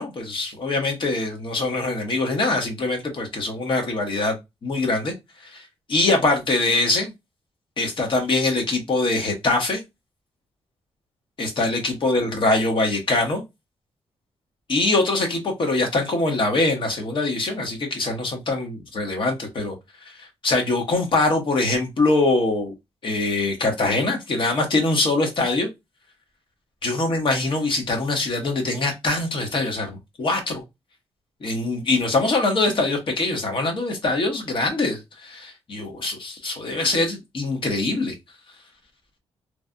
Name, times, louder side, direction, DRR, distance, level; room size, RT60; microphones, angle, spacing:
voice 1, 0.0-4.4 4.6-5.1 5.4-5.6 5.9-7.1 7.8-9.8 11.4-13.4 14.7-19.8 20.0-22.7 23.0-25.7 26.8-30.6 31.4-38.2, left 2 dB, 50° left, 1.1 m, -23 dB
3.2 x 2.3 x 2.6 m
cardioid pair, 95°, 11 cm